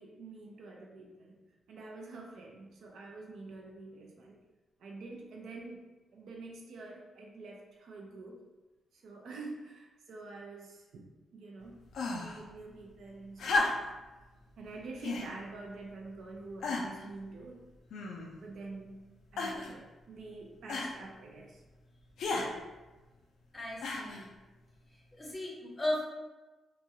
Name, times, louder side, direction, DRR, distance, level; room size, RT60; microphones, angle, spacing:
voice 1, 0.0-1.4 1.7-4.4 4.8-8.4 8.9-11.0 11.3-11.8 12.1-13.9 14.6-17.7 18.4-19.0 19.3-21.6 22.2-22.6, right 3 dB, 70° right, -1 dB, 0.5 m, -47 dB
rpg - tough girl battle sounds, 11.9-12.4 13.4-14.0 15.0-15.3 16.0-16.1 16.6-17.1 17.9-18.4 19.4-19.8 20.7-21.0 22.2-22.5 23.8-24.3 25.3-25.4, left 3 dB, 75° left, 0.4 m, -33 dB
voice 2, 23.5-24.3 25.1-26.0, left 1 dB, 15° left, -2 dB, 0.6 m, -36 dB
2.9 x 2.3 x 2.7 m, 1.1 s
wide cardioid pair, 150°, 0 cm